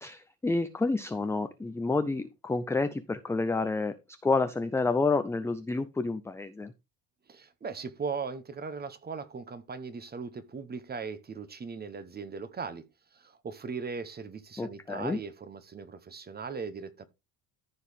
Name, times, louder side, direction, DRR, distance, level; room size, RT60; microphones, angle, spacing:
voice 1, 0.0-4.0 4.2-6.7 14.6-15.2, left 3 dB, 5° left, 0.4 m, -29 dB
voice 2, 7.3-12.8 13.1-17.1, right 5 dB, 20° right, 0.9 m, -38 dB
14.0 x 4.7 x 3.5 m
cardioid pair, 130°, 42 cm